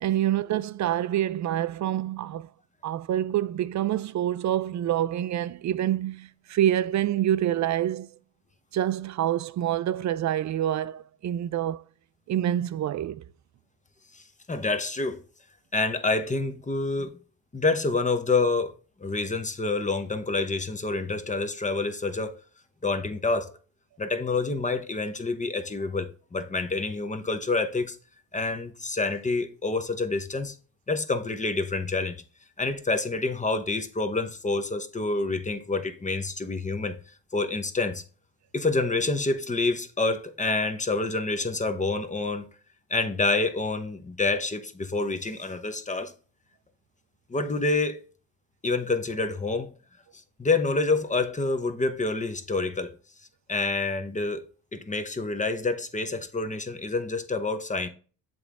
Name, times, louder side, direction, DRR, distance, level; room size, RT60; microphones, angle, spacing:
voice 1, 0.0-2.5 2.8-8.1 8.7-11.8 12.3-13.2, right 11 dB, 45° right, 0.4 m, -27 dB
voice 2, 14.5-15.2 15.7-17.1 17.5-18.7 19.0-22.3 22.8-23.5 24.0-28.0 28.3-30.5 30.9-32.2 32.6-36.9 37.3-38.0 38.5-42.5 42.9-46.1 47.3-48.0 48.6-49.7 50.4-52.9 53.5-54.4 54.7-57.9, left 3 dB, 20° left, 0.8 m, -27 dB
7.8 x 3.6 x 3.5 m
supercardioid pair, 65°, 41 cm